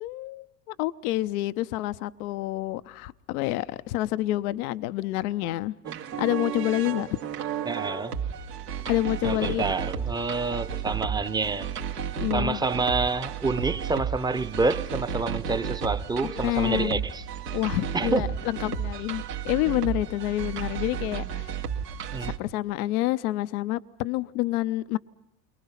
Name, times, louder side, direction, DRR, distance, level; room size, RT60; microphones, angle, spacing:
voice 1, 0.0-5.7 6.2-7.1 8.9-9.6 12.2-12.6 16.2-17.0 17.5-21.6 22.2-25.0, left 16 dB, 70° left, 0.8 m, -28 dB
sound 1, 5.8-22.4, right 7 dB, 85° right, 2.4 m, -33 dB
voice 2, 7.6-8.2 9.2-11.7 12.3-17.2 17.9-18.2 22.1-22.3, right 3 dB, 10° right, 0.8 m, -28 dB
30.0 x 23.5 x 5.8 m
hypercardioid pair, 90°, 46 cm